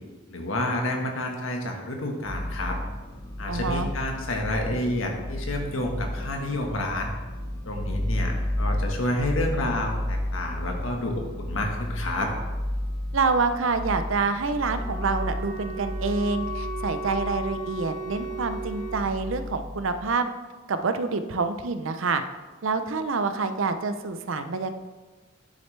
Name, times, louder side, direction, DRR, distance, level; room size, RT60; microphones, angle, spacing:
voice 1, 0.3-2.8 3.4-7.1 7.6-12.3, left 1 dB, 80° left, 2 dB, 1.4 m, -29 dB
sound 1, 2.2-20.1, left 1 dB, 20° left, 0.8 m, -33 dB
voice 2, 3.5-3.9 13.1-20.3 20.7-22.2 22.6-24.7, right 4 dB, 75° right, 9 dB, 0.6 m, -27 dB
Wind instrument woodwind instrument, 14.7-19.1, right 3 dB, ahead, 2.5 m, -36 dB
10.0 x 6.4 x 3.3 m, 1.3 s
head